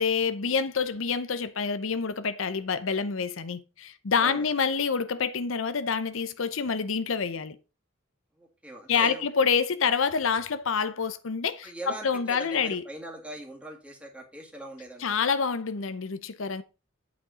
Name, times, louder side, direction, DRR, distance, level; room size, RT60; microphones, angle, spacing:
voice 1, 0.0-7.6 8.9-12.8 15.0-16.6, left 5 dB, 70° left, 0.7 m, -27 dB
voice 2, 4.2-4.5 8.4-9.3 11.6-15.2, right 1 dB, 5° right, 2.0 m, -41 dB
8.6 x 5.2 x 5.1 m
head